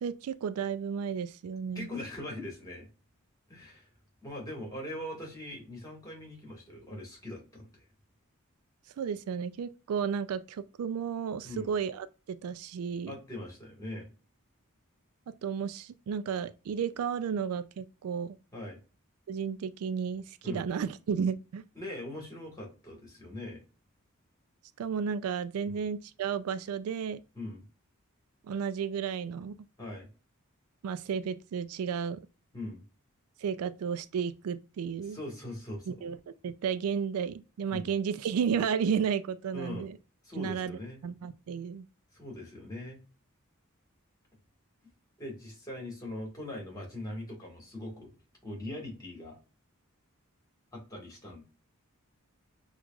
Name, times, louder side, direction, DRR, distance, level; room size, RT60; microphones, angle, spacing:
voice 1, 0.0-1.9 9.0-13.1 15.4-18.4 19.3-21.6 24.8-27.2 28.4-29.6 30.8-32.2 33.4-35.2 35.9-36.2 36.4-40.0 40.4-41.9, right 7 dB, 85° right, 0.3 m, -33 dB
voice 2, 1.7-2.9 3.5-3.9 4.2-7.9 11.4-11.7 13.1-14.1 18.5-18.8 20.4-20.7 21.7-23.6 25.6-25.8 27.3-27.6 29.8-30.1 32.5-32.8 35.0-35.9 37.7-37.9 39.5-39.9 40.2-41.0 42.1-43.0 45.2-48.1 48.4-49.4 50.7-51.4, left 1 dB, 15° left, 1.7 m, -41 dB
6.2 x 2.4 x 2.3 m
head